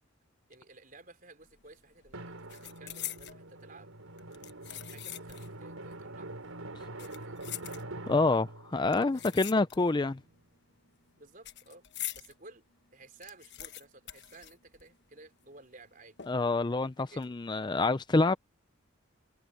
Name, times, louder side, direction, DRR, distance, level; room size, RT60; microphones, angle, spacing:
voice 1, 0.5-3.9 4.5-6.3 6.7-7.5 8.8-9.4 11.2-11.9 12.1-12.6 12.9-16.2 17.0-17.2, right 3 dB, 40° right, 4.5 m, -55 dB
sound 1, 1.4-1.7 2.0-3.4 4.2-5.6 5.9-6.0 6.8-8.2 8.9-10.1 10.4-12.3 12.7-12.8 13.0-15.1 15.4-15.5 16.2-16.6 17.0-17.2, left 13 dB, 55° left, 1.2 m, -43 dB
Drum, 2.1-10.4, right 2 dB, 85° right, 3.5 m, -45 dB
voice 2, 8.1-10.2 16.3-18.4, left 3 dB, 20° left, 0.4 m, -27 dB
head